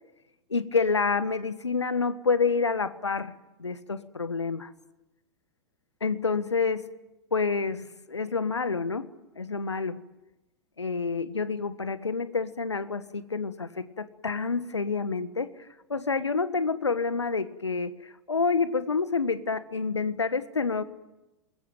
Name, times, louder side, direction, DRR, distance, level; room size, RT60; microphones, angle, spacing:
voice 1, 0.5-3.3 3.6-4.7 6.0-6.9 7.3-9.1 9.3-10.0 10.8-20.8, left 4 dB, 85° left, 13 dB, 1.5 m, -28 dB
27.5 x 22.0 x 9.0 m, 1.0 s
figure-of-eight pair, 90°, 14 cm